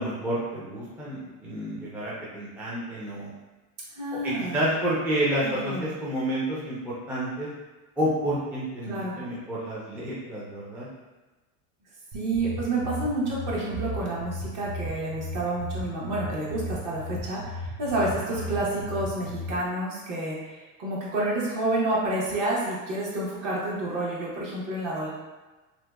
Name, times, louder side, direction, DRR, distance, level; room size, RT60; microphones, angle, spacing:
voice 1, 0.0-3.3 4.2-7.5 8.0-10.9 18.3-18.4, right 1 dB, 5° right, -8 dB, 0.3 m, -29 dB
voice 2, 3.9-4.6 5.4-5.9 8.8-9.2 12.1-25.1, right 2 dB, 50° right, -5 dB, 1.0 m, -29 dB
sound 1, 12.1-19.5, equal, 70° right, 0.5 m, -36 dB
2.8 x 2.1 x 2.2 m, 1.2 s
supercardioid pair, 115°, 40 cm